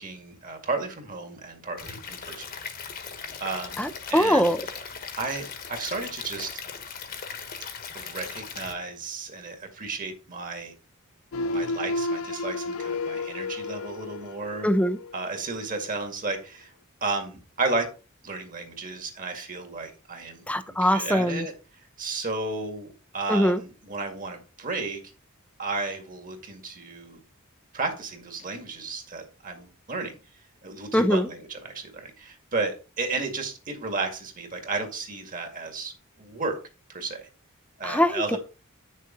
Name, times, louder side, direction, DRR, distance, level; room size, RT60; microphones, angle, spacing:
voice 1, 0.0-2.5 3.4-4.6 5.2-6.5 7.9-10.7 11.5-14.7 15.1-16.7 17.0-17.9 18.2-20.4 20.8-21.5 22.0-25.0 25.6-27.2 27.7-30.2 30.6-35.9 36.2-36.6 36.9-37.3 37.8-38.4, right 3 dB, 40° right, 4 dB, 2.1 m, -33 dB
Stream / Liquid, 1.8-8.7, left 6 dB, 45° left, 1.3 m, -39 dB
voice 2, 3.8-4.7 14.6-15.0 20.5-21.5 23.3-23.6 30.9-31.3 37.8-38.4, equal, 5° left, 10 dB, 0.6 m, -22 dB
sound 1, 11.3-15.3 15.7-15.9, left 2 dB, 80° left, 0.5 m, -32 dB
9.5 x 6.5 x 3.9 m, 0.33 s
head